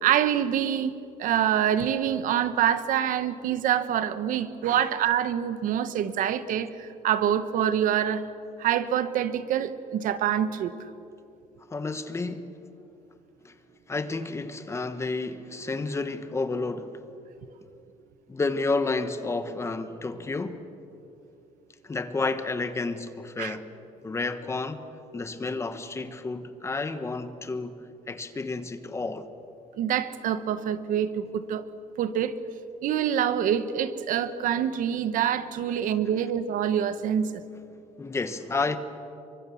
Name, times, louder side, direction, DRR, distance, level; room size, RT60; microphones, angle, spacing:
voice 1, 0.0-8.2 8.6-10.7 23.4-23.6 29.8-31.6 32.0-32.3 32.8-37.4, right 9 dB, 70° right, 1.3 m, -26 dB
voice 2, 11.7-12.5 13.4-13.5 13.9-17.0 18.3-20.6 21.8-23.6 24.0-24.9 25.1-29.3 38.0-38.8, left 3 dB, 20° left, 1.3 m, -31 dB
29.0 x 24.0 x 7.1 m
cardioid pair, 155°, 14 cm